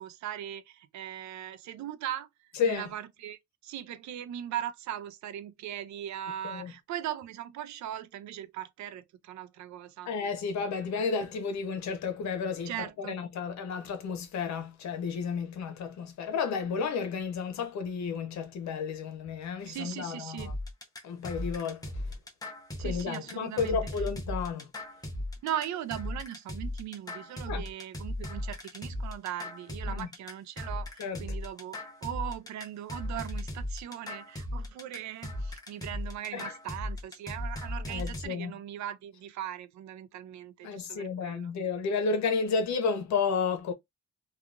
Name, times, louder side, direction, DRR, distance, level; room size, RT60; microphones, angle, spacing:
voice 1, 0.0-10.1 12.7-13.2 19.6-20.5 22.8-24.0 25.4-41.5, right 11 dB, 70° right, 0.5 m, -39 dB
voice 2, 10.1-12.7 13.0-20.5 21.0-21.8 22.8-24.7 27.5-27.6 29.9-30.1 31.0-31.2 36.3-36.5 37.9-38.5 40.6-43.7, left 5 dB, 65° left, 0.8 m, -32 dB
sound 1, 20.4-38.3, left 1 dB, 10° left, 0.8 m, -37 dB
2.8 x 2.4 x 2.4 m
cardioid pair, 90°, 30 cm